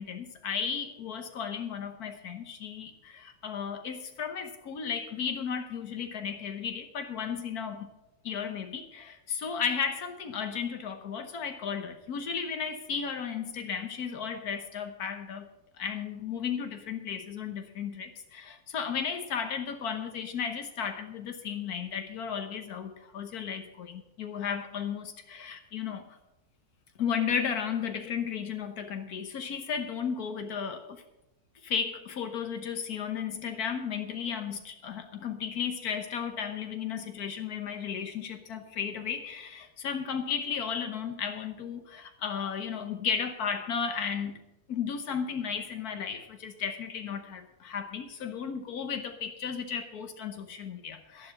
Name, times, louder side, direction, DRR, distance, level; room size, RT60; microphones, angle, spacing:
voice 1, 0.0-7.9 8.2-15.5 15.8-26.1 27.0-31.0 31.6-44.4 44.7-51.3, left 7 dB, 80° left, 7 dB, 1.5 m, -34 dB
12.5 x 11.0 x 5.5 m, 0.93 s
omnidirectional pair, 1.6 m